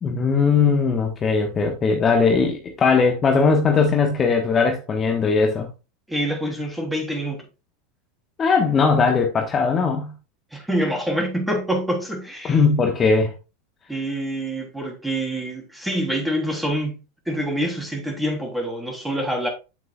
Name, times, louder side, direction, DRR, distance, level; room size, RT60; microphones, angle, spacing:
voice 1, 0.0-5.7 8.4-10.1 12.5-13.3, left 5 dB, 30° left, 1.3 m, -19 dB
voice 2, 6.1-7.4 10.5-12.6 13.9-17.0 17.3-19.5, right 1 dB, 5° right, 3.4 m, -26 dB
8.6 x 7.7 x 2.4 m
hypercardioid pair, 90°, 0 cm